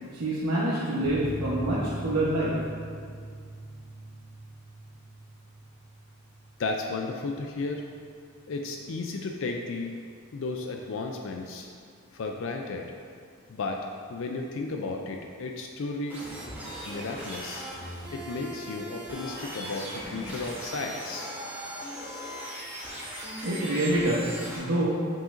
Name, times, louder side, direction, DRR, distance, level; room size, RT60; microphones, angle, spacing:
voice 1, 0.1-2.5 23.4-25.1, right 1 dB, 90° right, -8 dB, 0.9 m, -27 dB
sound 1, 1.0-8.2 8.4-8.5 8.8-8.9, right 1 dB, 30° left, 1.0 m, -41 dB
voice 2, 6.6-7.8 8.5-10.0 10.3-11.7 12.1-12.9 13.5-16.2 16.9-17.7 18.1-21.3, left 3 dB, 60° left, 2 dB, 0.4 m, -34 dB
sound 2, 16.1-24.6, equal, 10° right, 1.0 m, -39 dB
7.4 x 5.7 x 2.5 m, 2.2 s
head